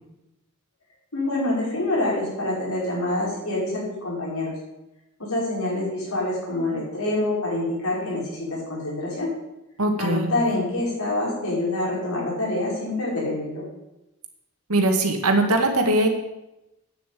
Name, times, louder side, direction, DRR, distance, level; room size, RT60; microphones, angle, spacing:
voice 1, 1.1-4.5 5.2-9.3 10.0-13.6, left 2 dB, 75° left, -4 dB, 5.4 m, -26 dB
voice 2, 9.8-10.4 14.7-16.1, right 2 dB, 85° right, 4 dB, 2.0 m, -21 dB
9.4 x 7.3 x 8.4 m, 0.93 s
head